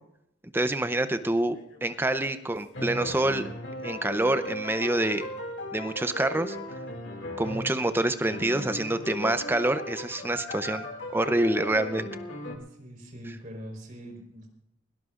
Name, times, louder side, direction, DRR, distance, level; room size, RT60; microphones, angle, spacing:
voice 1, 0.5-3.4 3.8-5.3 5.7-6.6 7.4-10.9 11.1-12.1, right 1 dB, 10° right, 10 dB, 0.6 m, -26 dB
sound 1, 1.6-2.5 2.7-7.9 8.3-12.6, left 1 dB, 65° left, 2.3 m, -37 dB
voice 2, 12.7-14.5, equal, 45° right, 1 dB, 4.1 m, -42 dB
20.5 x 18.0 x 2.5 m, 0.80 s
head